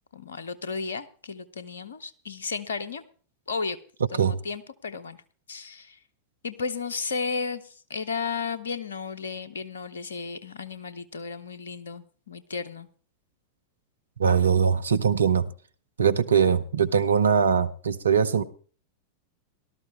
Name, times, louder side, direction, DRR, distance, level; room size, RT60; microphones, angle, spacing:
voice 1, 0.1-3.0 3.5-3.8 4.1-5.2 5.5-6.0 6.4-12.9, left 5 dB, 70° left, 1.0 m, -34 dB
voice 2, 14.2-15.5 16.0-18.4, right 7 dB, 70° right, 0.8 m, -21 dB
18.0 x 12.5 x 3.2 m
figure-of-eight pair, 90°, 0 cm